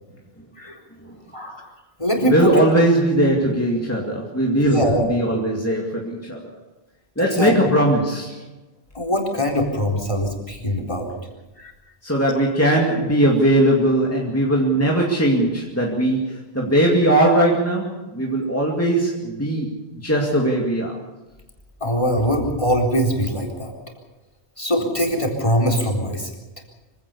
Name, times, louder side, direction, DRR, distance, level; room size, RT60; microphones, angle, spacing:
voice 1, 1.3-1.7 2.0-2.6 4.5-5.1 7.2-7.5 8.9-11.1 11.6-11.7 21.8-23.7 24.6-26.3, equal, 30° left, 3 dB, 4.1 m, -22 dB
voice 2, 2.2-6.4 7.2-8.4 12.0-21.0, right 1 dB, 15° left, -2 dB, 2.3 m, -19 dB
25.5 x 16.5 x 7.0 m, 1.1 s
omnidirectional pair, 1.1 m